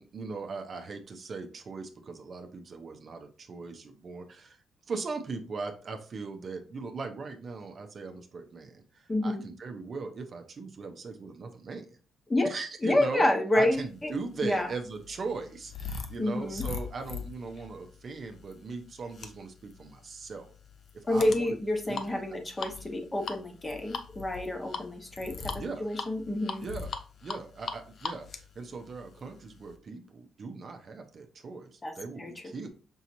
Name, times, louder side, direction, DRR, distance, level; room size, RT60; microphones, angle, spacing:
voice 1, 0.0-4.6 4.9-12.0 12.4-13.3 13.5-20.5 20.9-21.6 21.9-22.2 25.6-25.9 26.6-26.9 27.2-32.7, right 4 dB, 45° right, 5 dB, 0.6 m, -39 dB
voice 2, 9.1-9.4 12.3-12.5 12.8-14.1 14.4-14.7 16.2-16.6 21.1-25.3 25.8-26.7 31.8-31.9 32.2-32.3, left 1 dB, 20° left, 4 dB, 0.9 m, -28 dB
sound 1, 14.1-29.7, left 5 dB, 50° left, 0.5 m, -41 dB
5.4 x 2.9 x 2.6 m, 0.38 s
cardioid pair, 90°, 0 cm